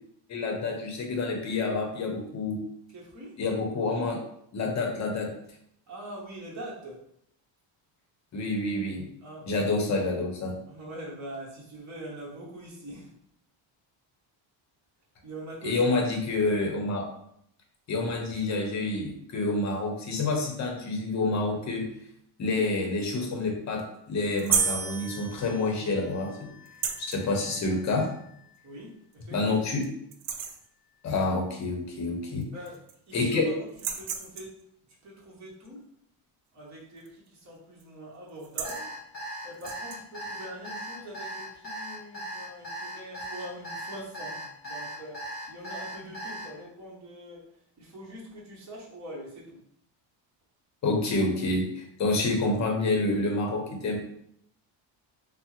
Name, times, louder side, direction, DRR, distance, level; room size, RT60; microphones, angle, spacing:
voice 1, 0.3-2.6 3.4-4.2 4.5-5.3 8.3-9.0 9.5-10.5 15.6-17.1 17.9-21.9 22.4-26.5 27.1-28.1 29.3-29.9 31.0-32.4 33.1-33.5 50.8-54.0, left 2 dB, 35° left, 2 dB, 0.7 m, -28 dB
voice 2, 2.9-3.4 5.9-7.0 9.2-9.8 10.7-13.1 15.2-16.0 28.6-29.7 32.5-32.8 33.1-33.7 33.9-34.6 35.0-35.9 36.5-38.9 39.4-49.6, right 1 dB, 35° right, -4 dB, 0.9 m, -43 dB
sound 1, 24.4-24.8 26.7-27.2 28.6-28.7 29.1-29.2 29.6-29.9 30.1-30.7 32.0-32.1 32.4-33.1 33.7-34.6 37.0-37.3 37.6-37.8 38.3-38.9 39.5-40.0, right 7 dB, 85° right, 0.6 m, -34 dB
sound 2, 24.5-27.7, right 6 dB, 5° right, 0.4 m, -33 dB
Alarm, 38.6-46.5, right 1 dB, 20° left, 1.1 m, -38 dB
3.3 x 2.0 x 2.9 m, 0.71 s
cardioid pair, 135°, 49 cm